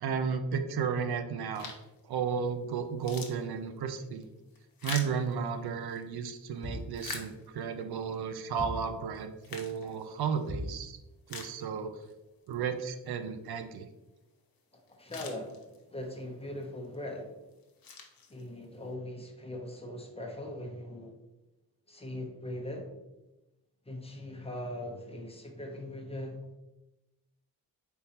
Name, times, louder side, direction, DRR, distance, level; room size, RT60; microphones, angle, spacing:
voice 1, 0.0-1.7 2.1-4.2 4.8-11.0 11.3-11.9 12.5-13.9, right 6 dB, 85° right, 8 dB, 0.5 m, -33 dB
sound 1, 1.5-2.0 2.5-2.6 2.9-6.0 6.6-7.8 8.4-8.5 9.1-10.5 10.9-11.0 11.3-12.1 12.5-12.6 14.6-14.7 14.9-16.0 16.6-17.0 17.5-18.8, left 5 dB, 65° left, 0.7 m, -45 dB
sound 2, 6.6-7.1 8.6-9.0 10.5-10.9, left 1 dB, 10° right, 1.5 m, -38 dB
voice 2, 14.9-17.4 18.3-21.1 21.9-22.9 23.9-26.4, left 1 dB, 15° left, 1 dB, 0.7 m, -40 dB
4.2 x 3.6 x 2.8 m, 1.0 s
wide cardioid pair, 110°, 37 cm